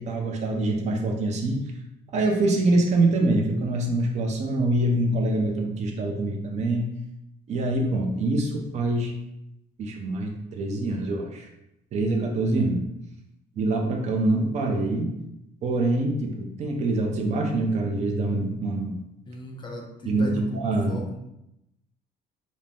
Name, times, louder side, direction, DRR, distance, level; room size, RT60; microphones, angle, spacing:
voice 1, 0.0-1.6 2.1-6.9 7.5-9.1 9.8-11.5 11.9-12.8 13.6-15.1 15.6-19.0 20.1-20.3 20.5-21.0, right 2 dB, 45° right, 1 dB, 0.5 m, -25 dB
voice 2, 19.3-21.2, left 1 dB, 30° left, 1 dB, 0.4 m, -36 dB
2.6 x 2.0 x 3.4 m, 0.84 s
cardioid pair, 110°, 17 cm